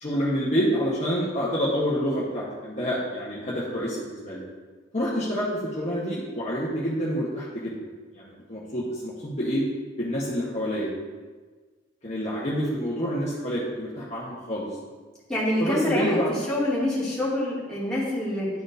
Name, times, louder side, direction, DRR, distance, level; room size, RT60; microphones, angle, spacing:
voice 1, 0.0-4.4 4.9-5.5 5.8-7.7 8.1-9.6 10.0-10.9 12.0-14.7 15.6-16.3, equal, 35° left, -7 dB, 1.0 m, -27 dB
voice 2, 15.3-18.5, left 1 dB, 5° left, -10 dB, 2.2 m, -26 dB
12.0 x 4.4 x 2.6 m, 1.4 s
head